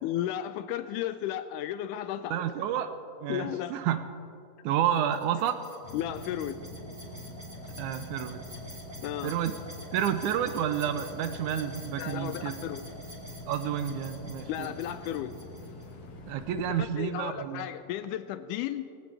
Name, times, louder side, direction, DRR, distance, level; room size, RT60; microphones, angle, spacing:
voice 1, 0.0-2.4 3.3-3.8 5.9-6.6 9.0-9.3 12.0-12.8 14.5-15.3 16.8-18.9, left 11 dB, 80° left, 11 dB, 1.8 m, -34 dB
voice 2, 2.3-2.9 3.2-4.0 4.6-5.6 7.8-8.4 9.2-9.6 9.9-12.5 13.5-14.7 16.3-17.7, right 10 dB, 80° right, 10 dB, 1.9 m, -30 dB
sound 1, 4.9-15.9, right 1 dB, 15° right, 3.9 m, -48 dB
sound 2, 5.8-16.9, left 2 dB, 60° left, 2.6 m, -45 dB
19.5 x 18.5 x 3.4 m, 2.6 s
omnidirectional pair, 4.0 m